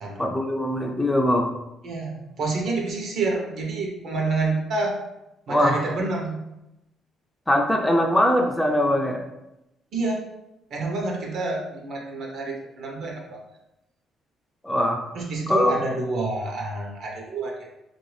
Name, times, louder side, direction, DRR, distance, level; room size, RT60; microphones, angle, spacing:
voice 1, 0.2-1.5 5.5-5.8 7.5-9.2 14.6-15.0 15.5-15.7, left 1 dB, 10° left, 1 dB, 0.3 m, -21 dB
voice 2, 1.8-5.0 5.5-6.4 9.9-10.2 10.7-13.4 15.1-17.7, right 3 dB, 60° right, 0 dB, 0.8 m, -28 dB
3.1 x 2.6 x 3.2 m, 0.90 s
cardioid pair, 125°, 0 cm